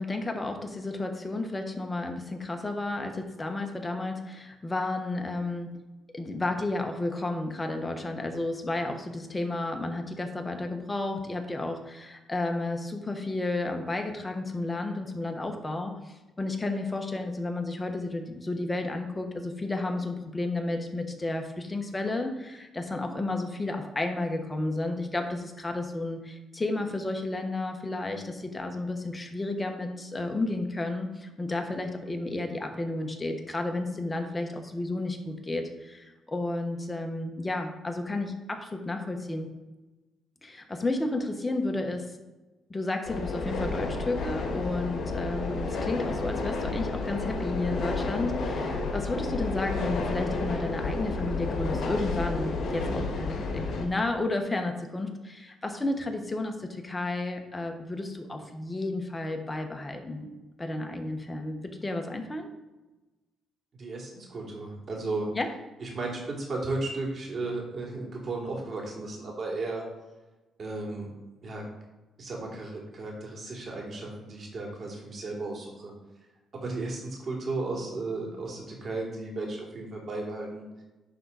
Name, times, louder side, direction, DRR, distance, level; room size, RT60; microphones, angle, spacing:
voice 1, 0.0-5.7 6.1-39.5 40.4-42.2 42.7-60.3 60.6-62.5 65.3-65.5, left 2 dB, 20° left, 4 dB, 1.2 m, -32 dB
sound 1, 43.0-53.9, left 3 dB, 65° left, 1.6 m, -31 dB
voice 2, 63.7-65.3 65.8-69.8 70.6-71.1 71.4-71.7 72.2-75.9 76.5-80.8, right 2 dB, 45° right, -2 dB, 2.7 m, -34 dB
11.0 x 3.9 x 4.1 m, 1.1 s
cardioid pair, 90°, 0 cm